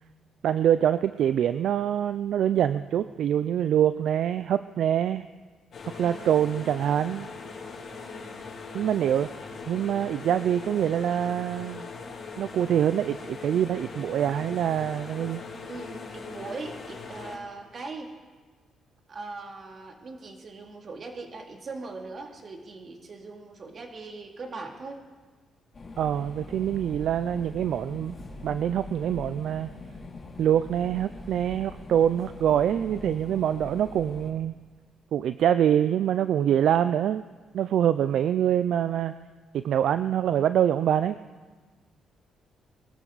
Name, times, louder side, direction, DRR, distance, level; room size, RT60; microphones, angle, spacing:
voice 1, 0.4-5.3 5.9-7.3 8.7-9.3 9.7-11.9 12.4-15.4 26.0-28.2 28.4-29.7 30.4-34.5 35.1-37.2 37.5-39.1 39.5-41.2, right 10 dB, 70° right, 12 dB, 0.4 m, -25 dB
sound 1, 5.7-17.4, left 4 dB, 60° left, 3.5 m, -40 dB
voice 2, 6.0-6.3 8.0-8.4 15.7-18.1 19.1-25.0, right 3 dB, 45° right, 2 dB, 2.5 m, -40 dB
sound 2, 25.7-34.3, left 2 dB, 40° left, 3.0 m, -42 dB
23.0 x 14.0 x 4.0 m, 1.4 s
cardioid pair, 90°, 0 cm